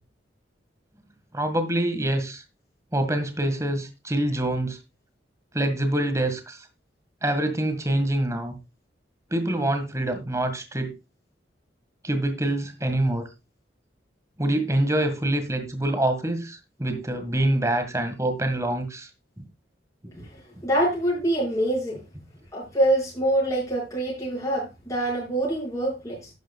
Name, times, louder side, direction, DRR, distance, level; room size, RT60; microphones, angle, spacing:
voice 1, 1.3-2.4 2.9-4.8 5.5-6.6 7.2-8.5 9.3-10.9 12.0-13.2 14.4-19.1 19.4-19.5, right 1 dB, 15° right, 1.8 m, -25 dB
voice 2, 20.2-22.0 22.5-26.3, right 1 dB, 20° left, 5.6 m, -25 dB
11.5 x 10.5 x 2.4 m
head